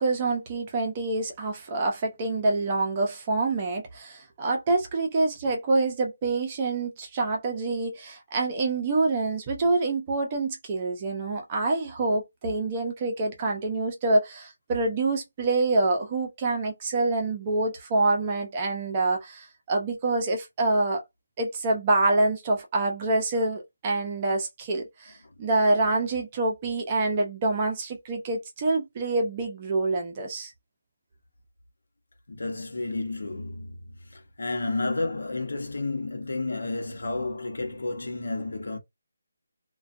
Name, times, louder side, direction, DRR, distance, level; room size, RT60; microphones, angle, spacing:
voice 1, 0.0-21.0 21.4-30.5, right 2 dB, 20° right, 0.5 m, -26 dB
voice 2, 32.3-38.8, left 2 dB, 80° left, 0.9 m, -31 dB
2.4 x 2.2 x 2.5 m
figure-of-eight pair, 170°, 0 cm